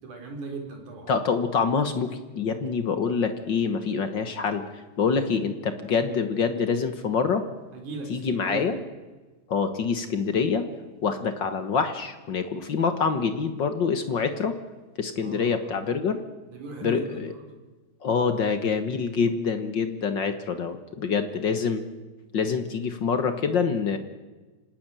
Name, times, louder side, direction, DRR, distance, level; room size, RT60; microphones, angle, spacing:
voice 1, 0.0-1.1 7.7-8.8 15.2-15.7 16.5-17.4, right 3 dB, 60° right, 3 dB, 5.4 m, -38 dB
voice 2, 1.1-4.6 5.0-7.4 8.1-8.8 9.5-10.6 11.0-14.6 15.0-16.2 16.8-17.3 18.0-21.8 22.3-24.0, left 5 dB, 60° left, 9 dB, 1.2 m, -26 dB
26.5 x 18.5 x 9.0 m, 1.3 s
omnidirectional pair, 3.9 m